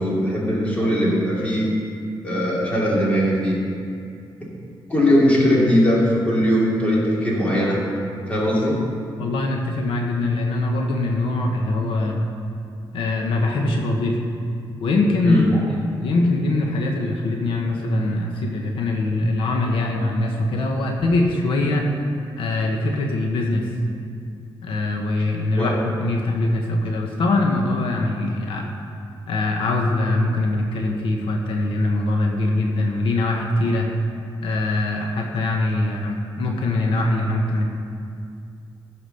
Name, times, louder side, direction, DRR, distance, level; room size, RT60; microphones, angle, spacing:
voice 1, 0.0-1.7 2.2-3.6 4.9-7.8 8.3-8.8 15.2-15.5 25.6-25.8, equal, 15° left, -5 dB, 2.7 m, -20 dB
voice 2, 9.2-12.2 12.9-14.2 14.8-15.4 15.8-21.9 22.4-23.7 24.6-28.7 29.3-33.9 34.4-37.7, left 2 dB, 85° left, 1 dB, 1.2 m, -22 dB
15.0 x 5.0 x 6.4 m, 2.4 s
wide cardioid pair, 145°, 9 cm